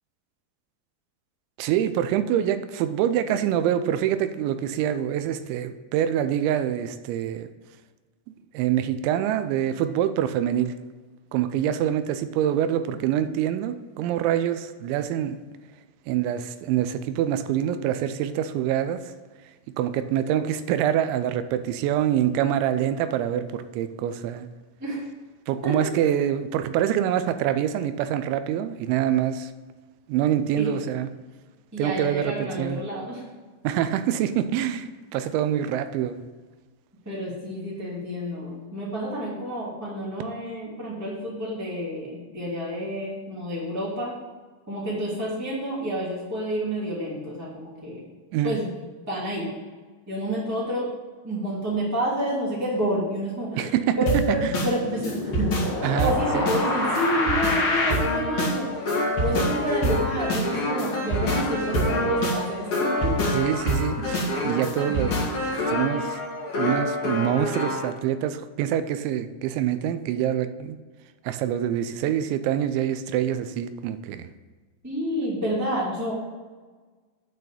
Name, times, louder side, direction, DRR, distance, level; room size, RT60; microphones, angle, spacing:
voice 1, 1.6-7.5 8.3-10.8 11.3-15.4 16.1-19.1 19.8-24.5 25.5-29.5 30.1-31.1 31.8-32.8 33.6-36.2 48.3-48.6 53.6-54.0 54.3-54.5 55.8-56.5 63.3-65.4 65.7-66.2 66.6-70.8 71.2-74.3, right 10 dB, 90° right, 11 dB, 2.9 m, -25 dB
voice 2, 31.7-33.2 37.0-44.1 44.7-48.0 48.4-48.8 49.1-49.5 50.1-50.9 51.2-53.7 54.0-55.5 56.0-58.7 59.2-63.1 74.8-76.2, equal, 5° right, -7 dB, 1.4 m, -29 dB
sound 1, 54.1-67.9, left 1 dB, 45° left, 1.8 m, -26 dB
8.8 x 4.1 x 6.7 m, 1.4 s
omnidirectional pair, 5.2 m